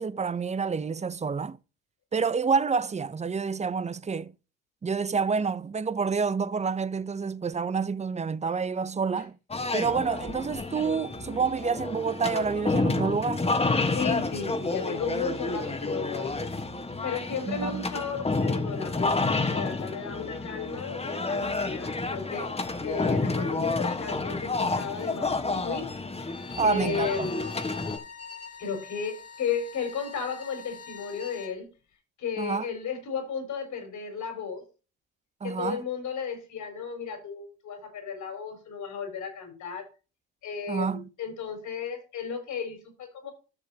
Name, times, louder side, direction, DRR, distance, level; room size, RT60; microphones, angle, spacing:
voice 1, 0.0-1.6 2.1-4.3 4.8-9.3 9.7-13.4 17.5-17.9 26.6-27.3 32.4-32.7 35.4-35.8 40.7-41.1, right 5 dB, 25° right, 0.5 m, -28 dB
sound 1, 9.5-28.0, left 3 dB, 20° left, 1.3 m, -30 dB
voice 2, 13.9-16.4 17.0-22.5 22.8-25.9 26.6-27.5 28.6-31.7 32.2-34.6 35.4-39.9 40.4-43.3, left 6 dB, 75° left, 4.7 m, -34 dB
Bowed string instrument, 26.2-31.6, left 6 dB, 50° left, 1.9 m, -44 dB
13.5 x 6.5 x 2.8 m
cardioid pair, 90°, 30 cm